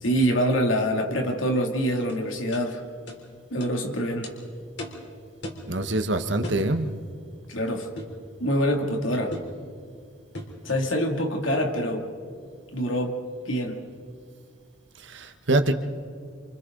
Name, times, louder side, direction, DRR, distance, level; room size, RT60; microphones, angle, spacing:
voice 1, 0.0-2.8 3.5-4.3 7.5-7.9 8.4-9.4 10.6-12.1 12.7-13.2 13.4-13.8, equal, 90° left, 2 dB, 2.9 m, -25 dB
sound 1, 2.1-2.2 2.5-2.7 3.1-3.2 3.6-3.8 4.2-4.4 4.8-5.0 5.4-5.7 6.4-6.7 8.0-8.2 9.3-9.6 10.3-10.6, left 1 dB, 60° left, 3.9 m, -37 dB
voice 2, 5.7-6.9 15.0-15.7, right 2 dB, 70° right, 7 dB, 1.4 m, -24 dB
28.5 x 28.0 x 4.0 m, 2.2 s
head